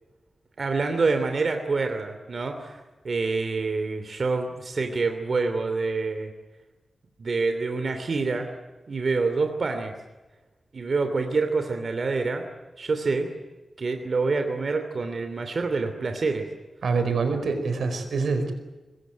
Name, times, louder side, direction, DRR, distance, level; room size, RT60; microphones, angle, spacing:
voice 1, 0.6-6.3 7.2-8.5 8.9-9.9 10.7-12.4 12.8-13.3 13.8-16.4, right 4 dB, 50° right, 6 dB, 2.9 m, -26 dB
voice 2, 16.8-18.5, right 4 dB, 85° right, 8 dB, 4.9 m, -25 dB
25.5 x 21.0 x 9.2 m, 1.2 s
wide cardioid pair, 130°, 0 cm